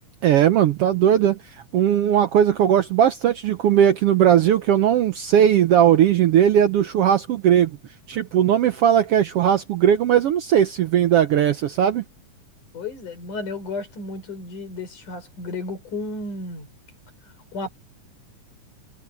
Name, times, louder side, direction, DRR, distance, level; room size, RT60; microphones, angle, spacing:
voice 1, 0.2-1.4 1.7-7.7 8.1-12.0, right 10 dB, 70° right, 1.4 m, -18 dB
voice 2, 12.7-16.7 17.5-17.7, left 3 dB, 85° left, 7.6 m, -33 dB
omnidirectional pair, 3.5 m